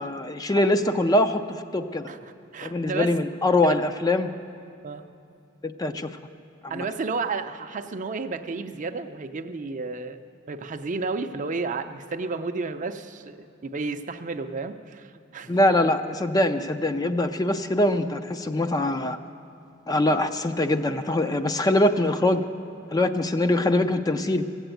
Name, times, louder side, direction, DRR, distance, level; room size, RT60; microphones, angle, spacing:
voice 1, 0.0-1.4 1.7-2.1 2.6-4.3 5.6-6.2 6.7-6.8 15.5-19.2 19.9-22.4 22.9-24.4, left 1 dB, 20° left, 8 dB, 0.4 m, -23 dB
voice 2, 2.1-3.1 3.6-3.8 4.8-5.0 6.7-10.2 10.5-15.5, right 4 dB, 40° right, 8 dB, 0.5 m, -32 dB
15.0 x 8.0 x 9.0 m, 2.5 s
head